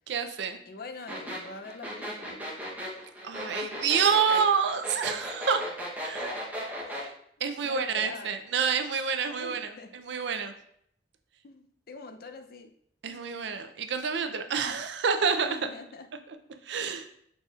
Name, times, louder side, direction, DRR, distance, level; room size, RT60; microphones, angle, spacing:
voice 1, 0.1-0.6 3.2-5.6 6.0-6.3 7.4-10.5 13.0-15.6 16.7-17.1, right 6 dB, 70° right, 8 dB, 0.5 m, -28 dB
voice 2, 0.7-2.4 3.3-3.7 6.8-8.3 8.6-8.7 9.3-9.9 10.3-10.4 11.4-12.7 13.1-13.4 15.4-16.1, left 3 dB, 50° left, 6 dB, 0.5 m, -45 dB
sound 1, 1.1-7.1, equal, 10° right, 0.8 m, -36 dB
5.5 x 4.0 x 2.4 m, 0.69 s
head